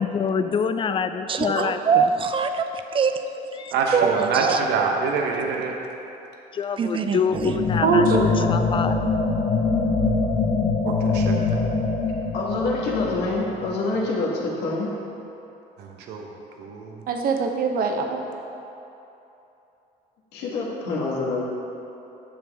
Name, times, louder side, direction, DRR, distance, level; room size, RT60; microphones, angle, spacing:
voice 1, 0.0-2.1 3.6-3.7 6.5-9.0, left 6 dB, 30° left, 9 dB, 0.4 m, -26 dB
voice 2, 1.3-3.6 3.9-4.6 6.8-7.5, right 6 dB, 30° right, 8 dB, 0.5 m, -24 dB
voice 3, 3.7-5.7 10.8-11.6 15.8-16.2 16.6-17.0, right 4 dB, 85° right, 1 dB, 0.9 m, -26 dB
sound 1, 7.3-14.1, left 4 dB, 50° left, 1.0 m, -24 dB
voice 4, 7.8-8.5 17.1-18.2, right 4 dB, 60° right, 3 dB, 0.9 m, -22 dB
voice 5, 12.3-14.9 20.3-21.4, left 2 dB, 80° left, -3 dB, 1.6 m, -26 dB
10.0 x 6.9 x 3.5 m, 3.0 s
cardioid pair, 110°, 17 cm